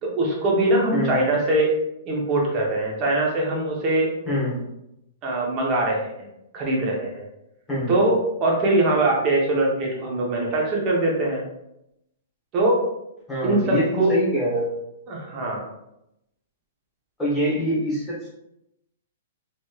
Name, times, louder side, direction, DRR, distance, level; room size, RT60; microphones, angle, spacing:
voice 1, 0.0-1.8 2.1-4.2 5.2-6.1 6.5-7.3 7.9-11.4 12.5-12.8 13.4-14.1 15.1-15.7, right 2 dB, 25° right, -2 dB, 0.7 m, -22 dB
voice 2, 4.3-4.6 7.7-8.0 13.3-14.7 17.2-18.3, equal, 5° left, -10 dB, 1.0 m, -24 dB
3.0 x 2.9 x 2.3 m, 0.82 s
hypercardioid pair, 170°, 0 cm